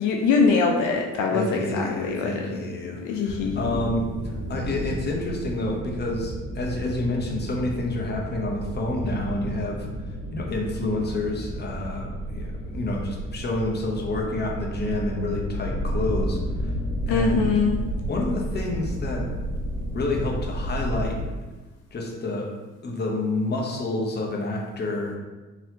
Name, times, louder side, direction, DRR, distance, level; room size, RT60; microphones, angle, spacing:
voice 1, 0.0-2.4 3.0-3.9 17.1-17.8, left 4 dB, 80° left, 1 dB, 0.5 m, -23 dB
voice 2, 1.3-9.9 10.3-16.7 17.1-17.5 18.1-19.3 19.9-21.2 21.9-22.5 22.8-25.2, left 2 dB, 35° left, 0 dB, 0.8 m, -29 dB
sound 1, 3.2-21.3, right 1 dB, 80° right, 1.4 m, -31 dB
4.0 x 2.8 x 2.7 m, 1.2 s
cardioid pair, 90°, 30 cm